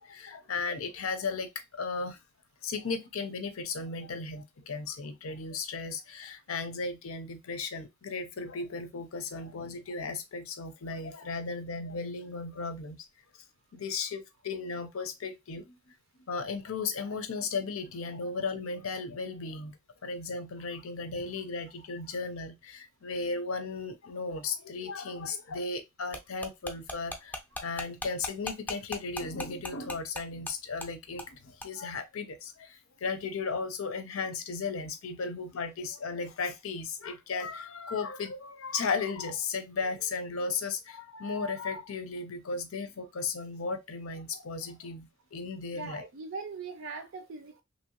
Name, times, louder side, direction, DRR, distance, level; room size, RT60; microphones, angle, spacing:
voice 1, 0.0-2.2 2.6-13.0 13.7-15.8 16.3-19.8 20.0-46.0, left 4 dB, 85° left, 0.6 m, -35 dB
sound 1, 26.1-30.5 30.8-30.9 31.2-31.3 31.6-31.7, left 1 dB, 10° left, 0.4 m, -37 dB
voice 2, 45.7-47.6, right 4 dB, 70° right, 0.5 m, -40 dB
2.9 x 2.7 x 2.8 m
head